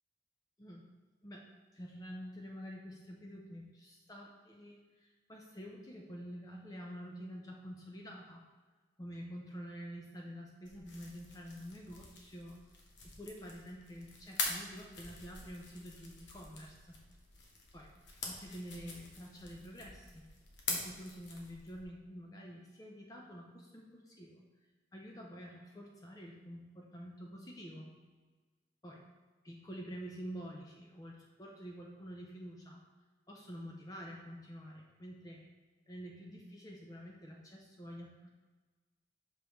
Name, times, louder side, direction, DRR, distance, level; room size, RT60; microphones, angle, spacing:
voice 1, 0.6-0.9 1.2-1.5 1.7-8.4 9.0-12.6 13.0-16.8 17.7-17.9 18.2-20.3 20.7-24.4 24.9-27.9 28.8-29.0 29.4-32.8 33.3-35.4 35.9-38.3, equal, 20° left, 0 dB, 0.5 m, -48 dB
sound 1, 10.7-21.8, left 3 dB, 75° left, 1.0 m, -45 dB
6.1 x 5.1 x 3.0 m, 1.4 s
head